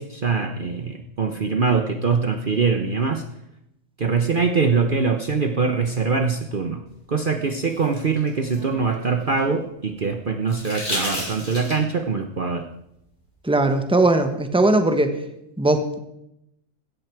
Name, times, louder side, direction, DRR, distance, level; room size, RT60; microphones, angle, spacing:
voice 1, 0.0-3.2 4.0-6.8 7.1-12.6, right 5 dB, 45° right, 6 dB, 1.0 m, -23 dB
sound 1, 7.3-9.6 10.5-12.0 13.7-13.8, left 1 dB, 55° left, 6.2 m, -32 dB
voice 2, 13.4-15.2 15.6-16.0, right 2 dB, 5° right, 7 dB, 1.3 m, -19 dB
16.0 x 13.5 x 4.7 m, 0.82 s
omnidirectional pair, 1.4 m